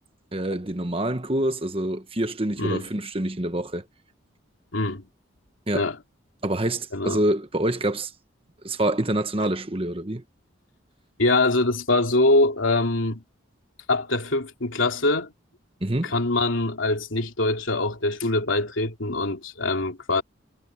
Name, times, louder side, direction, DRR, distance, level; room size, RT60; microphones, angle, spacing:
voice 1, 0.3-3.8 5.7-5.9 6.4-8.1 8.6-10.2 15.8-16.1, right 1 dB, 30° right, 1.3 m, -26 dB
voice 2, 4.7-5.1 5.7-6.0 6.9-7.2 11.2-13.2 13.9-15.3 16.0-20.2, left 2 dB, 80° left, 2.9 m, -23 dB
head